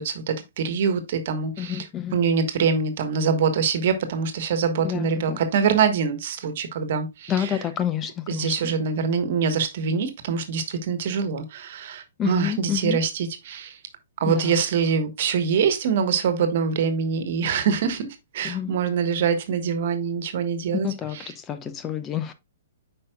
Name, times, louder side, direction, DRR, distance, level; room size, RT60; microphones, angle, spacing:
voice 1, 0.0-1.8 2.1-7.5 8.3-13.8 14.2-18.1 18.3-20.9 21.1-21.3, right 6 dB, 50° right, 1.3 m, -24 dB
voice 2, 1.6-2.2 4.8-5.4 7.3-8.7 12.2-13.0 14.3-14.6 18.4-18.7 20.8-22.3, left 10 dB, 20° left, 0.7 m, -28 dB
8.7 x 5.4 x 2.3 m
figure-of-eight pair, 115°, 0 cm